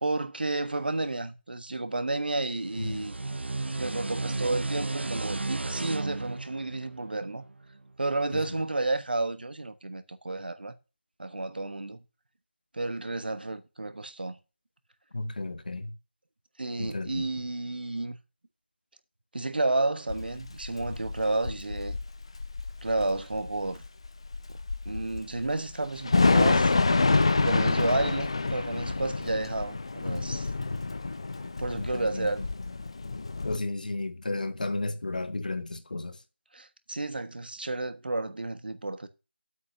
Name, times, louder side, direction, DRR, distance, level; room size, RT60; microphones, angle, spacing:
voice 1, 0.0-3.2 3.8-7.4 8.0-10.7 11.2-12.0 12.7-14.4 16.6-18.2 19.3-22.0 22.8-23.8 24.5-24.6 24.8-26.7 27.4-30.5 31.6-32.4 36.5-39.1, right 2 dB, 60° right, 1.3 m, -31 dB
sound 1, 2.6-7.9, right 2 dB, 75° right, 0.6 m, -34 dB
voice 2, 2.8-3.1 8.3-8.6 15.1-16.0 16.8-17.4 31.7-32.8 33.4-36.2, left 2 dB, 45° left, 1.2 m, -34 dB
Thunder / Rain, 20.1-33.6, left 3 dB, 30° left, 0.6 m, -27 dB
8.2 x 5.4 x 6.7 m
figure-of-eight pair, 175°, 6 cm